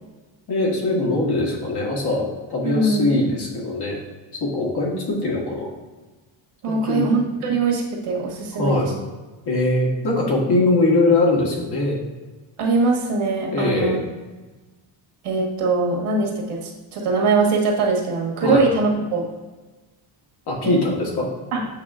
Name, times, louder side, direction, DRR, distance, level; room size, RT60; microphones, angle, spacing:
voice 1, 0.5-4.0 4.4-5.7 6.7-7.1 8.6-8.9 9.5-12.0 13.5-14.0 18.4-18.7 20.5-21.3, left 2 dB, 50° left, -2 dB, 1.6 m, -21 dB
voice 2, 2.6-3.1 6.6-8.9 12.6-14.0 15.2-19.2 20.6-20.8 21.5-21.6, right 3 dB, 85° right, -2 dB, 1.6 m, -22 dB
8.2 x 4.8 x 2.5 m, 1.2 s
cardioid pair, 175°, 49 cm